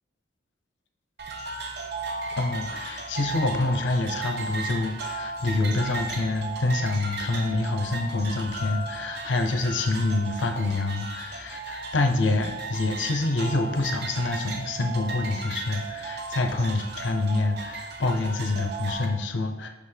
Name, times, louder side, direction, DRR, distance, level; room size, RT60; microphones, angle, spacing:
sound 1, 1.2-19.1, right 3 dB, 55° right, 0.7 m, -35 dB
voice 1, 2.4-19.7, left 2 dB, 70° left, 5 dB, 0.6 m, -26 dB
6.4 x 5.5 x 3.3 m, 1.2 s
head